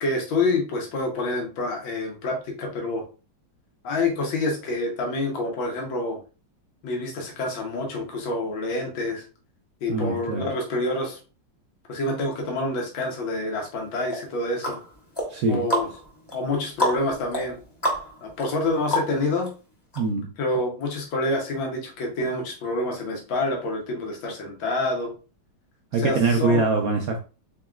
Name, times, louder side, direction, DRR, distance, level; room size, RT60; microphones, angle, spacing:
voice 1, 0.0-3.1 3.8-6.2 6.8-9.3 9.8-11.2 11.9-14.8 15.5-15.9 16.3-17.6 18.2-19.5 20.4-25.1 26.0-26.6, left 2 dB, 90° left, 1.7 m, -27 dB
voice 2, 9.9-10.5 15.3-15.7 20.0-20.3 25.9-27.2, right 3 dB, 75° right, 0.8 m, -23 dB
sound 1, 14.1-19.5 19.9-20.0, equal, 25° left, 0.6 m, -30 dB
4.0 x 3.6 x 2.3 m
omnidirectional pair, 2.1 m